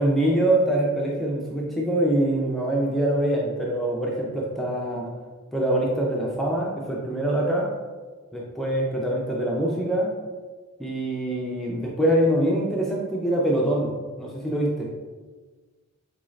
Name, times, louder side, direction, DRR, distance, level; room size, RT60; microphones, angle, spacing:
voice 1, 0.0-5.1 5.5-7.7 8.3-10.1 10.8-14.9, right 1 dB, ahead, -3 dB, 0.4 m, -24 dB
3.9 x 2.5 x 3.1 m, 1.3 s
head